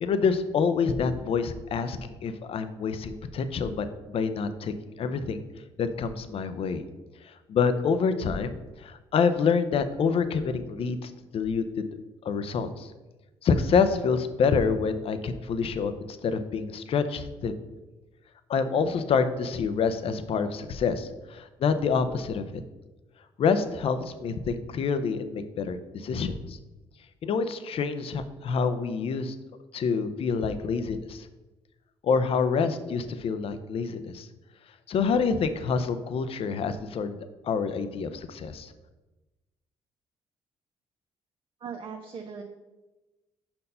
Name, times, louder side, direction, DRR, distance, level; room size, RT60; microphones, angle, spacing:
voice 1, 0.0-5.4 5.8-6.8 7.2-11.9 12.2-12.9 13.4-17.5 18.5-22.4 23.4-26.6 27.2-29.4 29.7-31.3 32.0-34.3 34.9-37.2 37.4-38.7, left 5 dB, 60° left, 10 dB, 0.6 m, -27 dB
voice 2, 41.6-42.4, right 6 dB, 50° right, 3 dB, 0.7 m, -38 dB
5.4 x 4.3 x 5.5 m, 1.1 s
supercardioid pair, 70°, 11 cm